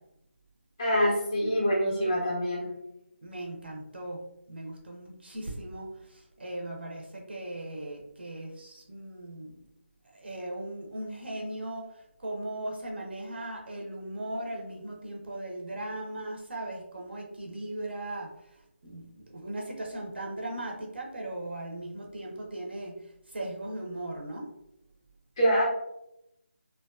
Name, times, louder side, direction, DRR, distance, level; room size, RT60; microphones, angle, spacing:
voice 1, 0.8-2.7 25.4-25.6, equal, 15° left, -6 dB, 0.4 m, -25 dB
voice 2, 3.2-9.5 10.0-24.5, right 1 dB, 55° right, -1 dB, 0.5 m, -38 dB
2.5 x 2.2 x 2.3 m, 0.84 s
figure-of-eight pair, 175°, 7 cm